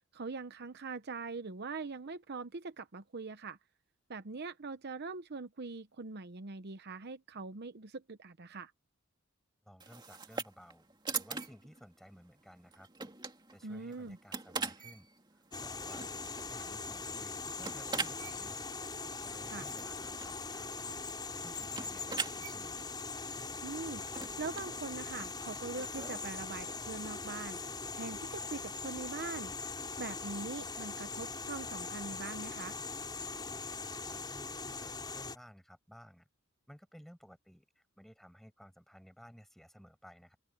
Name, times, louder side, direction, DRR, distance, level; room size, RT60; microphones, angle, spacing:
voice 1, 0.1-3.6 4.1-8.7 13.6-14.2 19.4-19.7 23.6-24.0 24.4-27.6 27.9-29.5 30.0-32.8, right 4 dB, 50° right, 0.8 m, -42 dB
voice 2, 9.6-12.9 13.5-16.0 16.5-18.6 19.2-21.0 21.4-22.8 34.1-36.3 36.7-40.4, equal, ahead, 6.9 m, -56 dB
sound 1, 9.8-26.3, right 4 dB, 20° right, 2.3 m, -44 dB
sound 2, 15.5-35.4, left 4 dB, 20° left, 5.1 m, -41 dB
open air
head